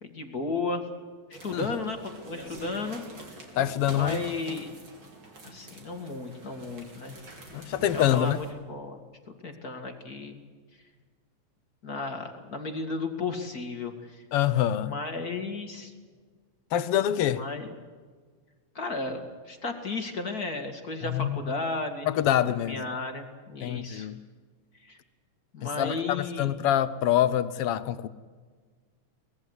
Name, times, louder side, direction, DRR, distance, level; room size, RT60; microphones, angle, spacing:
voice 1, 0.0-0.8 1.3-3.0 3.9-4.7 5.4-7.2 7.8-9.0 9.4-10.4 11.8-14.2 14.8-15.9 17.4-17.7 18.7-22.1 22.6-24.1 24.8-25.0 25.5-26.5, left 3 dB, 35° left, 2.2 m, -34 dB
sound 1, 1.3-8.5, right 2 dB, 45° right, 4.2 m, -45 dB
voice 2, 3.5-4.2 7.5-8.4 14.3-14.9 16.7-17.4 21.0-21.5 22.0-22.8 23.6-24.2 25.6-28.1, left 11 dB, 70° left, 1.5 m, -26 dB
24.0 x 19.5 x 8.1 m
omnidirectional pair, 3.3 m